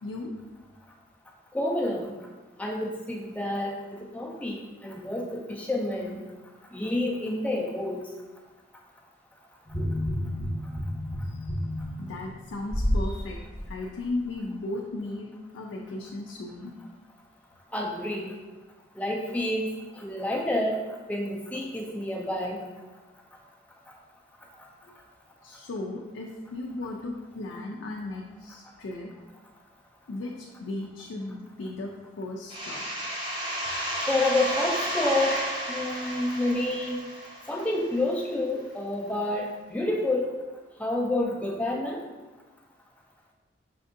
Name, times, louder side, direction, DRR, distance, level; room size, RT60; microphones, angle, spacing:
voice 1, 1.5-2.1 2.6-3.7 4.1-6.2 6.7-8.0 17.7-18.3 19.0-19.7 20.0-20.8 21.1-22.6 34.1-35.4 35.7-37.0 37.5-40.3 40.8-42.0, left 1 dB, 5° left, -1 dB, 0.3 m, -28 dB
sound 1, 9.7-13.1 13.6-13.7, equal, 25° left, 0.8 m, -30 dB
voice 2, 12.0-16.7 24.8-24.9 25.4-29.1 30.1-32.9, left 2 dB, 90° left, 0 dB, 0.4 m, -36 dB
sound 2, 32.5-38.0, equal, 25° right, 0.7 m, -32 dB
5.8 x 2.5 x 2.6 m, 1.2 s
head